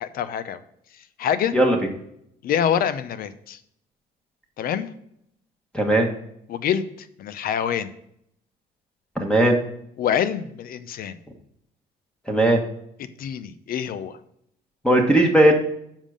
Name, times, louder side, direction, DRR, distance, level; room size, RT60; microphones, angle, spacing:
voice 1, 0.0-0.6 1.2-1.5 2.4-3.6 4.6-4.9 6.5-7.9 10.0-11.2 13.0-14.2, left 9 dB, 60° left, 14 dB, 0.7 m, -26 dB
voice 2, 5.7-6.1 9.2-9.6 12.3-12.6 14.8-15.5, right 1 dB, 5° left, 2 dB, 1.5 m, -17 dB
7.3 x 5.5 x 5.1 m, 0.72 s
cardioid pair, 110°, 17 cm